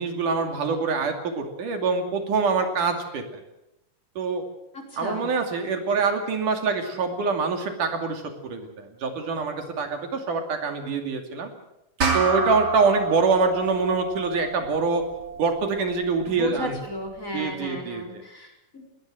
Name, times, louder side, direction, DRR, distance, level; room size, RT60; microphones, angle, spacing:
voice 1, 0.0-3.4 4.2-4.4 5.0-11.5 12.1-15.0 15.4-16.8 17.3-18.2, right 4 dB, 70° right, 5 dB, 4.1 m, -25 dB
voice 2, 4.7-5.2 16.3-18.9, left 1 dB, 25° left, 3 dB, 4.8 m, -35 dB
sound 1, 12.0-16.8, right 4 dB, 30° right, 3.1 m, -30 dB
21.0 x 20.0 x 7.8 m, 0.89 s
omnidirectional pair, 3.7 m